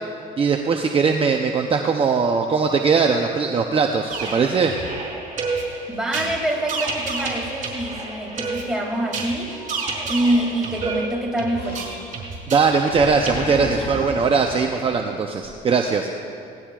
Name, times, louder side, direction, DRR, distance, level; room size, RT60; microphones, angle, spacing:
voice 1, 0.4-4.7 12.5-16.1, right 5 dB, 35° right, 3 dB, 0.7 m, -20 dB
sound 1, 4.1-13.3, right 3 dB, 50° right, 3.6 m, -30 dB
voice 2, 5.9-9.7 10.0-11.8, right 1 dB, 5° right, -2 dB, 2.5 m, -25 dB
Animal, 10.2-11.0 11.5-12.3 12.6-15.5, left 1 dB, 35° left, 3.7 m, -34 dB
19.0 x 18.0 x 2.4 m, 2.6 s
cardioid pair, 110°, 17 cm